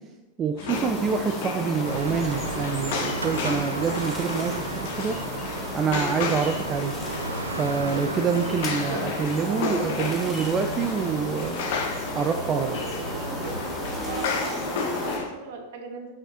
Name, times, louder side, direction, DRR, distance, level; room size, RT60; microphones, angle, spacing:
voice 1, 0.4-5.2 5.7-6.9 7.6-11.7 12.1-12.8, right 6 dB, 25° right, 5 dB, 0.4 m, -26 dB
sound 1, 0.6-15.2, left 5 dB, 55° left, 0.8 m, -33 dB
sound 2, 0.7-15.2, left 1 dB, 15° left, 2.2 m, -34 dB
sound 3, 1.8-14.2, right 3 dB, 80° right, 0.6 m, -35 dB
voice 2, 8.8-10.0 12.9-13.6 14.0-16.1, right 3 dB, 55° right, 4 dB, 1.0 m, -38 dB
7.1 x 5.4 x 2.8 m, 1.2 s
figure-of-eight pair, 90°, 0 cm